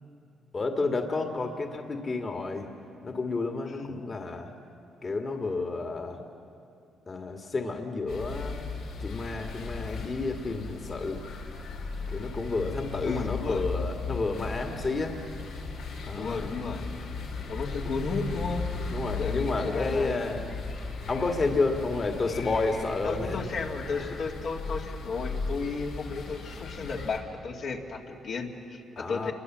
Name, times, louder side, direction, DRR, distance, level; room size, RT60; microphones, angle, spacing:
voice 1, 0.5-2.7 3.0-4.5 5.0-6.2 7.1-8.6 9.0-11.2 12.1-15.2 16.0-16.5 18.9-20.4 21.1-23.4 24.0-24.1 29.0-29.3, left 3 dB, 35° left, 4 dB, 2.0 m, -30 dB
sound 1, 8.1-27.2, left 3 dB, 90° left, 4.0 m, -36 dB
voice 2, 13.0-13.6 16.2-16.9 17.5-18.6 19.2-20.3 23.0-29.3, left 4 dB, 65° left, 0 dB, 2.3 m, -34 dB
27.5 x 23.0 x 7.5 m, 2.7 s
cardioid pair, 90°, 0 cm